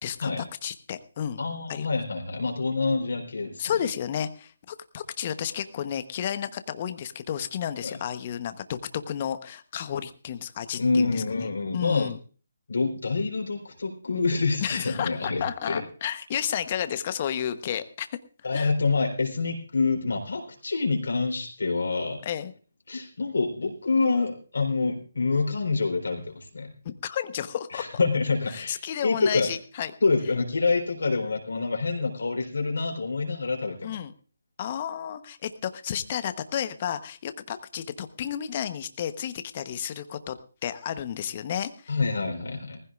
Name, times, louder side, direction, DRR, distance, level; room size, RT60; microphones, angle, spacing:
voice 1, 0.0-1.4 1.7-1.9 3.6-11.2 11.7-12.2 14.6-18.2 18.5-18.7 22.2-22.5 26.8-27.9 28.5-29.9 33.8-34.1 34.6-40.4 40.6-41.9, left 9 dB, 35° left, 11 dB, 1.0 m, -32 dB
voice 2, 1.4-3.6 7.8-8.0 10.8-12.1 12.7-15.8 18.4-22.2 22.9-26.7 27.7-29.5 30.0-34.0 41.9-42.8, left 4 dB, 70° left, 2 dB, 3.8 m, -27 dB
20.0 x 15.5 x 2.5 m, 0.38 s
figure-of-eight pair, 145°, 0 cm